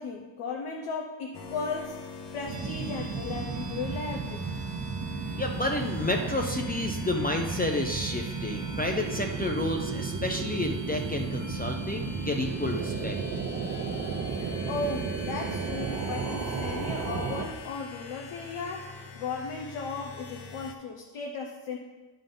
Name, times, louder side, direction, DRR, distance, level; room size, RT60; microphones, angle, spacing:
voice 1, 0.0-2.0 2.3-4.6 14.6-21.8, left 4 dB, 80° left, 1 dB, 0.9 m, -36 dB
sound 1, 1.3-20.7, left 4 dB, 55° left, 0.9 m, -45 dB
sound 2, 2.5-17.5, right 5 dB, 35° right, 0.7 m, -33 dB
voice 2, 5.3-13.2, left 2 dB, 20° left, 2 dB, 0.4 m, -30 dB
11.5 x 3.8 x 5.4 m, 1.2 s
wide cardioid pair, 170°, 49 cm